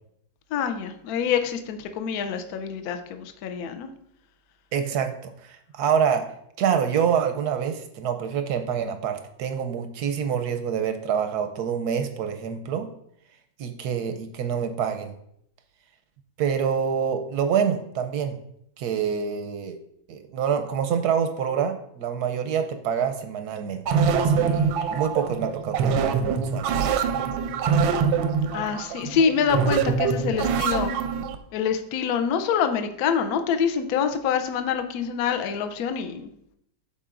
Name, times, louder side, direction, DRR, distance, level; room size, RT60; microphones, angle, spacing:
voice 1, 0.5-3.9 28.5-30.9 31.5-36.3, left 7 dB, 70° left, 7 dB, 0.9 m, -26 dB
voice 2, 4.7-6.3 6.6-12.9 13.6-15.1 16.4-18.4 18.8-19.8 20.1-26.7, right 7 dB, 70° right, 7 dB, 0.9 m, -26 dB
sound 1, 23.9-31.4, right 6 dB, 90° right, 1.4 m, -24 dB
12.5 x 4.3 x 2.5 m, 0.73 s
omnidirectional pair, 2.1 m